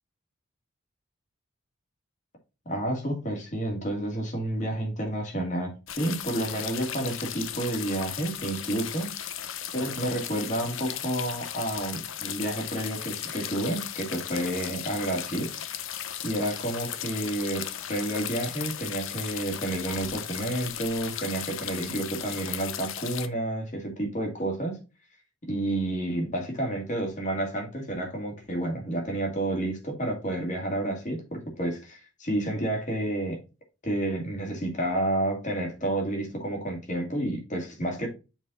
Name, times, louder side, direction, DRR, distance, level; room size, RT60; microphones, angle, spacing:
voice 1, 2.7-9.1 9.7-15.5 16.2-24.8 25.5-33.4 33.8-38.1, right 1 dB, 35° left, 2.4 m, -30 dB
sound 1, 5.9-23.3, left 10 dB, 65° left, 0.7 m, -36 dB
7.3 x 4.3 x 4.0 m
head